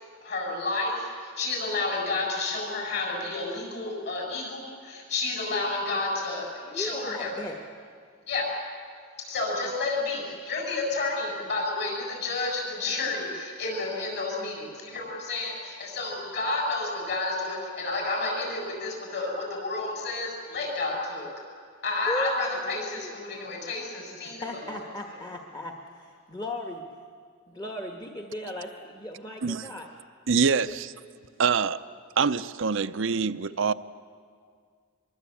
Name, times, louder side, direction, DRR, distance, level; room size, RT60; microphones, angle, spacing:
voice 1, 0.2-7.3 8.3-8.5 9.3-21.3 21.8-24.4 24.7-24.8, left 3 dB, 55° left, 7.7 m, -30 dB
voice 2, 6.7-7.6 22.1-23.1 24.1-26.9 27.5-29.9, left 1 dB, 20° left, 1.2 m, -37 dB
voice 3, 29.4-29.7 30.3-30.9 31.4-31.8 32.2-33.7, right 5 dB, 65° right, 0.6 m, -25 dB
24.0 x 22.5 x 8.5 m
head